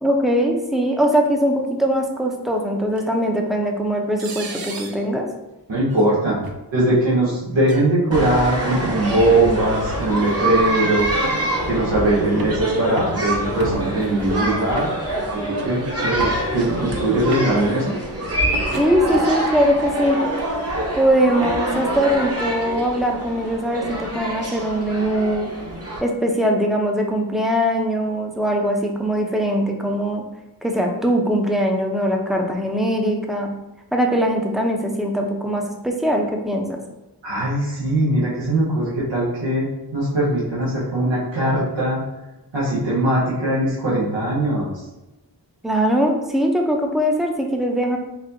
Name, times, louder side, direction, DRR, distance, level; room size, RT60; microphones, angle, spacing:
voice 1, 0.0-5.3 18.8-20.2 21.0-25.5 26.0-30.2 30.6-33.5 33.9-36.8 45.6-48.0, equal, ahead, 1 dB, 0.6 m, -21 dB
sound 1, 3.0-3.1 4.2-5.0 5.9-6.1 6.4-6.6 7.6-7.8 8.5-9.0 10.2-10.3 11.0-11.4 12.0-12.6 13.0-13.2 13.6-14.1 14.8-15.3 15.6-15.7 16.0-16.7 17.1-17.6 18.4-19.5 20.1-20.4 21.0-22.3, right 3 dB, 55° right, 0.6 m, -34 dB
voice 2, 5.7-6.4 6.7-11.4 11.7-14.9 15.3-17.9 37.2-42.0 42.5-44.7, right 1 dB, 90° right, -8 dB, 1.1 m, -20 dB
sound 2, 8.1-26.0, right 1 dB, 35° right, 1.0 m, -25 dB
4.1 x 2.7 x 2.7 m, 0.99 s
cardioid pair, 50°, 43 cm